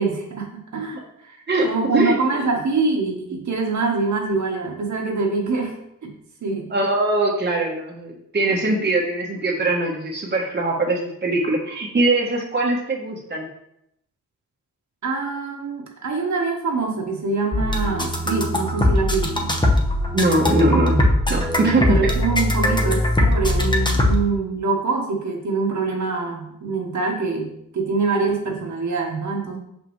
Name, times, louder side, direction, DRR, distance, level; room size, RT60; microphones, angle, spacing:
voice 1, 0.0-1.4 1.6-5.8 6.0-6.2 6.4-6.7 15.0-19.6 21.6-29.6, right 4 dB, 55° right, 0 dB, 1.3 m, -24 dB
voice 2, 1.5-2.1 6.7-13.5 20.1-21.0 21.3-22.1, right 2 dB, 30° right, -1 dB, 1.2 m, -21 dB
sound 1, 17.5-24.1, left 1 dB, 15° left, 1.0 m, -20 dB
5.8 x 5.2 x 3.2 m, 0.76 s
cardioid pair, 75°, 34 cm